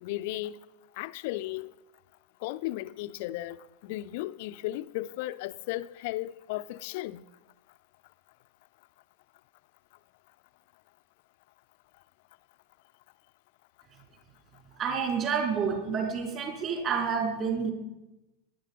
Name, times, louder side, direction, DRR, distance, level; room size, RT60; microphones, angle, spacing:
voice 1, 0.0-0.6 1.0-1.7 2.4-7.2, left 16 dB, 50° left, 0.6 m, -35 dB
voice 2, 14.8-17.7, right 6 dB, 30° right, 4.2 m, -29 dB
17.5 x 11.0 x 5.4 m
figure-of-eight pair, 90°, 0 cm